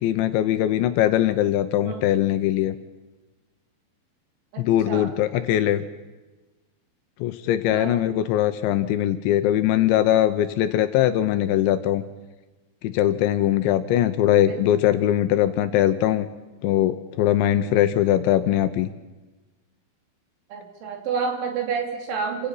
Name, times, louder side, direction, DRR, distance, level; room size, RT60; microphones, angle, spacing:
voice 1, 0.0-2.8 4.6-5.8 7.2-12.0 12.8-16.3 16.6-18.9, left 12 dB, 80° left, 10 dB, 2.9 m, -21 dB
voice 2, 4.5-5.1 7.7-8.0 14.5-14.7 20.5-22.5, right 5 dB, 70° right, 2 dB, 5.2 m, -29 dB
29.0 x 17.0 x 5.7 m, 1.2 s
omnidirectional pair, 5.7 m